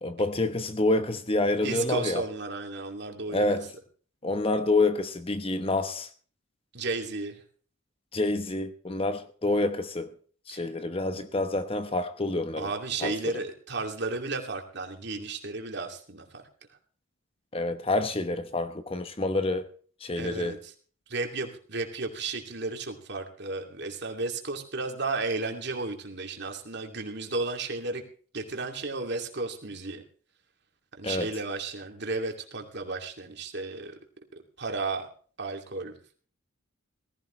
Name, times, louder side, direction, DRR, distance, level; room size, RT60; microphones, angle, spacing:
voice 1, 0.0-2.2 3.3-3.7 4.2-6.1 8.1-10.1 10.5-12.7 13.0-13.1 17.5-19.7 20.0-20.6 31.0-31.3, left 2 dB, 30° left, 1.0 m, -27 dB
voice 2, 1.6-3.5 6.7-7.4 10.5-10.7 12.6-16.4 20.2-20.7 21.1-28.0 28.3-30.0 31.0-33.9 34.3-35.1 35.4-36.1, right 3 dB, 55° right, 2.6 m, -33 dB
18.0 x 15.5 x 3.2 m
head